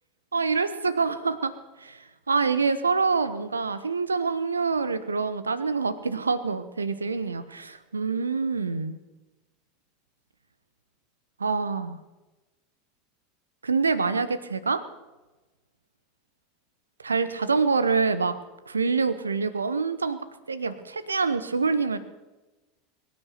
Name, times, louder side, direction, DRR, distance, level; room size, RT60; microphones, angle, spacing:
voice 1, 0.3-1.5 1.8-9.0 11.4-12.0 13.6-14.8 17.0-18.4 18.7-20.2 20.5-22.0, right 4 dB, 80° right, 14 dB, 0.9 m, -26 dB
22.0 x 9.6 x 5.8 m, 1.1 s
figure-of-eight pair, 80°, 0 cm